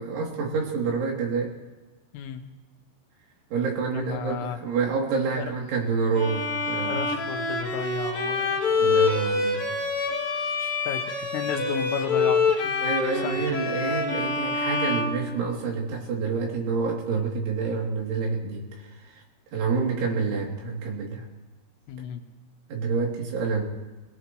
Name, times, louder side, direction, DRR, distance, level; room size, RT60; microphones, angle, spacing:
voice 1, 0.0-1.5 3.5-7.0 8.8-9.6 12.8-19.2 19.5-21.3 22.7-23.6, right 5 dB, 70° right, -2 dB, 5.3 m, -28 dB
voice 2, 3.9-4.6 5.3-5.5 6.8-8.6 10.6-12.8 13.1-13.9 21.9-22.2, left 8 dB, 85° left, 4 dB, 3.9 m, -34 dB
Bowed string instrument, 6.2-15.9, left 3 dB, 55° left, 3.7 m, -26 dB
25.5 x 18.0 x 3.1 m, 1.2 s
omnidirectional pair, 5.7 m